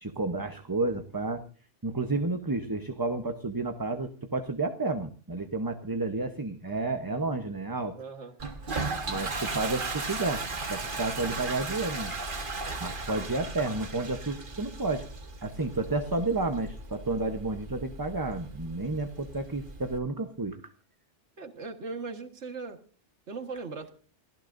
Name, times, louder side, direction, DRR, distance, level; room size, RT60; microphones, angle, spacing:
voice 1, 0.0-1.4 1.8-8.0 9.1-10.4 10.7-12.1 12.8-15.1 15.4-20.7, right 3 dB, 20° right, 6 dB, 0.9 m, -31 dB
voice 2, 8.0-8.3 13.2-13.3 21.4-22.8 23.3-23.9, right 4 dB, 75° right, 7 dB, 1.9 m, -39 dB
Toilet flush, 8.4-20.0, right 3 dB, 45° right, 1.7 m, -37 dB
29.0 x 15.0 x 2.6 m, 0.38 s
omnidirectional pair, 1.2 m